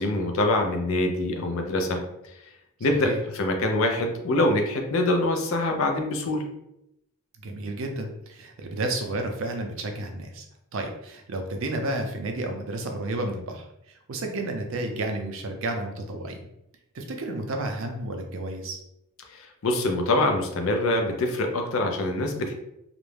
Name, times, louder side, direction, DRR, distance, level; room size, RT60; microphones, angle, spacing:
voice 1, 0.0-2.0 2.8-6.4 19.3-22.5, left 2 dB, 70° left, 3 dB, 0.5 m, -24 dB
voice 2, 7.4-10.4 10.7-16.4 16.9-18.8, right 2 dB, 65° right, 4 dB, 0.4 m, -31 dB
2.4 x 2.1 x 3.1 m, 0.83 s
head